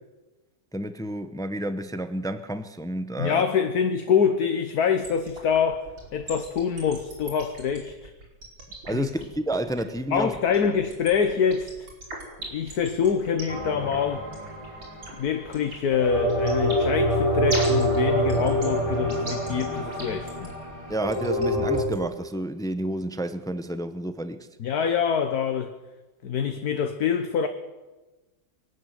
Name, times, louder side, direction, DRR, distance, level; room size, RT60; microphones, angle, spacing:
voice 1, 0.7-3.4 8.9-10.4 20.9-24.5, right 1 dB, 5° left, 0.4 m, -30 dB
voice 2, 3.2-5.9 6.1-8.1 8.9-9.1 10.1-11.9 12.4-14.2 15.1-20.5 24.6-25.8 26.2-27.5, left 7 dB, 55° left, 1.6 m, -25 dB
sound 1, 5.0-22.0, right 2 dB, 85° right, 5.8 m, -38 dB
sound 2, 13.5-15.2 15.9-21.8, equal, 15° right, 3.4 m, -26 dB
23.5 x 12.5 x 9.3 m
omnidirectional pair, 2.0 m